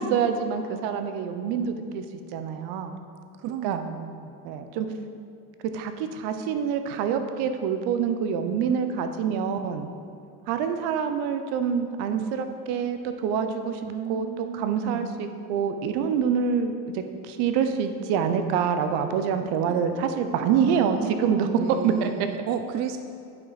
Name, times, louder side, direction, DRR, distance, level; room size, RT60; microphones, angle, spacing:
voice 1, 0.0-2.0 2.3-3.0 3.6-3.8 4.4-4.9 5.6-9.9 10.5-13.8 14.1-22.3, right 7 dB, 65° right, 8 dB, 0.8 m, -26 dB
voice 2, 3.4-4.3 13.8-15.1 19.7-19.9 20.4-23.0, right 8 dB, 40° right, 7 dB, 0.4 m, -34 dB
8.3 x 5.8 x 4.1 m, 2.4 s
supercardioid pair, 105°, 43 cm